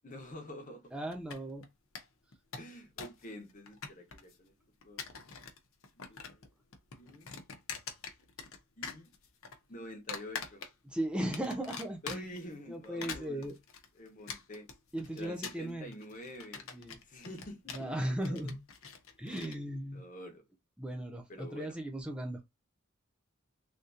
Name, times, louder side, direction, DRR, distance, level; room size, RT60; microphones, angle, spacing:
voice 1, 0.0-0.9 2.6-4.5 4.8-5.0 6.0-6.5 7.0-7.3 8.8-9.1 9.7-10.6 12.0-13.5 13.9-14.7 15.1-16.6 17.1-18.5 19.2-19.5 19.9-20.4 21.3-21.8, equal, 40° left, 0.9 m, -47 dB
voice 2, 0.9-1.7 10.9-12.3 12.7-13.5 14.9-15.9 16.7-17.0 17.7-18.6 19.2-20.0 20.8-22.4, right 1 dB, 5° right, 0.4 m, -37 dB
sound 1, 1.1-1.7 2.0-2.1 2.3-3.2 3.5-4.3 4.8-5.6 5.8-6.5 6.7-8.6 8.8-9.6 10.1-10.9 11.3-12.4 12.8-19.6, left 6 dB, 80° left, 0.8 m, -44 dB
3.4 x 2.6 x 2.6 m
head